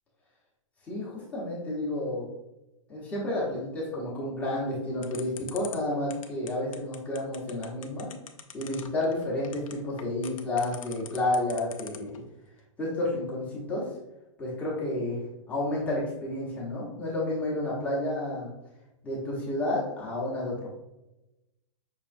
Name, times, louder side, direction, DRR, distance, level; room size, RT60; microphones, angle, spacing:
voice 1, 0.9-2.3 2.9-8.1 8.5-12.2 12.8-13.8 14.4-15.2 15.5-18.5 19.0-20.7, left 1 dB, 10° left, -5 dB, 0.9 m, -31 dB
sound 1, 5.0-12.2, left 8 dB, 80° left, 0.6 m, -43 dB
5.6 x 3.0 x 2.5 m, 0.95 s
hypercardioid pair, 165°, 17 cm